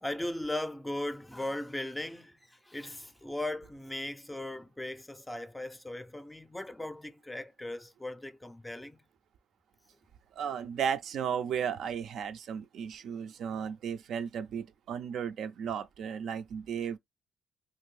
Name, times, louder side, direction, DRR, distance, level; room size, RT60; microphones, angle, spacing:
voice 1, 0.0-9.0, left 1 dB, 10° left, 0.4 m, -38 dB
voice 2, 10.4-17.0, right 7 dB, 70° right, 0.4 m, -34 dB
2.6 x 2.6 x 3.2 m
cardioid pair, 90°, 0 cm